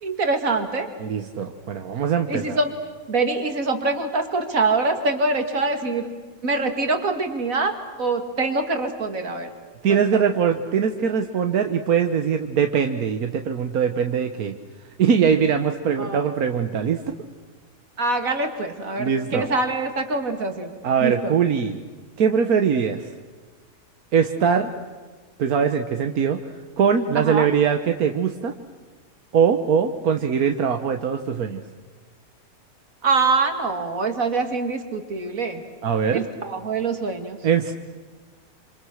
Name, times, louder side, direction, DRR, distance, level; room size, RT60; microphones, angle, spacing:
voice 1, 0.0-0.9 2.3-2.7 3.1-6.1 6.4-9.5 9.9-10.1 16.0-16.2 18.0-20.7 21.0-21.4 27.2-27.5 33.0-35.6 36.1-37.4, right 3 dB, 65° right, 6 dB, 2.7 m, -24 dB
voice 2, 1.0-2.6 9.8-14.5 15.0-17.0 19.0-19.5 20.8-21.8 22.2-23.1 24.1-24.7 25.4-26.4 26.8-28.5 29.3-31.6 35.8-36.2 37.4-37.7, right 7 dB, 85° right, 6 dB, 1.6 m, -21 dB
27.0 x 27.0 x 6.4 m, 1.4 s
omnidirectional pair, 1.5 m